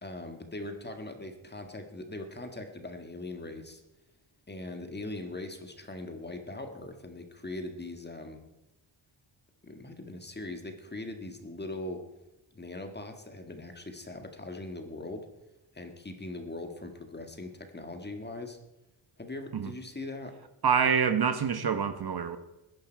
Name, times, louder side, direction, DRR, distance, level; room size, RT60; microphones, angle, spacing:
voice 1, 0.0-3.8 4.5-8.4 9.6-12.0 12.5-15.2 15.7-18.6 19.2-20.3, left 2 dB, 20° left, 1.6 m, -40 dB
voice 2, 20.6-22.4, right 7 dB, 50° right, 1.0 m, -26 dB
20.5 x 10.5 x 4.5 m
wide cardioid pair, 140°, 49 cm